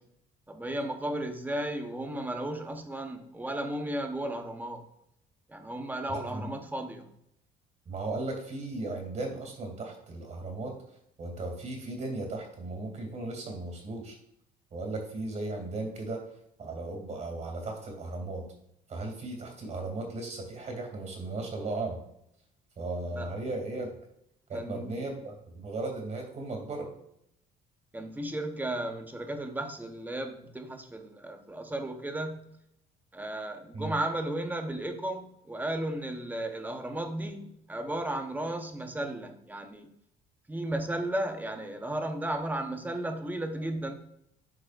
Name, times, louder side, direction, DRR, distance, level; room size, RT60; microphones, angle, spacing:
voice 1, 0.5-4.9 5.5-7.1 23.1-23.3 24.5-25.1 27.9-32.6 33.1-39.9 40.5-43.9, right 1 dB, 10° right, 5 dB, 0.9 m, -34 dB
voice 2, 6.1-6.5 7.9-10.7 11.2-14.2 14.7-16.2 16.6-18.4 18.9-22.0 22.8-23.9 24.5-26.9 33.7-33.9, right 2 dB, 45° right, 2 dB, 2.6 m, -36 dB
11.5 x 4.8 x 2.5 m, 0.75 s
cardioid pair, 110°, 17 cm